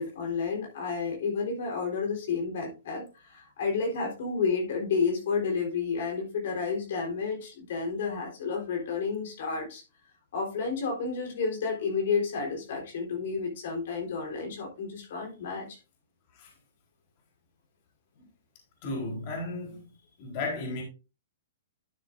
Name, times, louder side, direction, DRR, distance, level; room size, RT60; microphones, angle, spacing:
voice 1, 0.0-9.8 10.3-15.8, left 5 dB, 60° left, 3.8 m, -31 dB
voice 2, 18.8-19.8 20.2-20.8, left 2 dB, 40° left, 3.9 m, -34 dB
12.0 x 7.4 x 2.6 m
hypercardioid pair, 155°, 0 cm